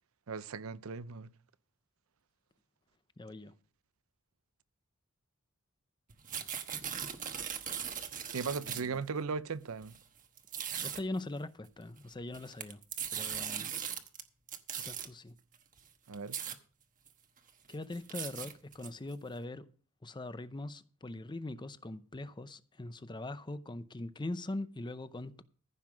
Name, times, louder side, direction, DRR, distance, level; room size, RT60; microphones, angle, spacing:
voice 1, 0.3-1.3 8.3-9.9 13.6-13.7 16.1-16.4, right 5 dB, 80° right, 0.6 m, -37 dB
voice 2, 3.2-3.5 8.6-9.0 10.8-12.8 13.1-13.7 14.7-15.4 17.7-19.7 20.0-25.4, left 2 dB, 20° left, 0.6 m, -41 dB
sound 1, 6.1-9.0 9.8-10.0 10.4-11.0 12.2-14.2 14.5-15.1 15.8-15.9 16.1-16.6 17.1-17.2 17.5-19.1, right 8 dB, 40° right, 1.1 m, -39 dB
15.0 x 5.7 x 6.1 m
head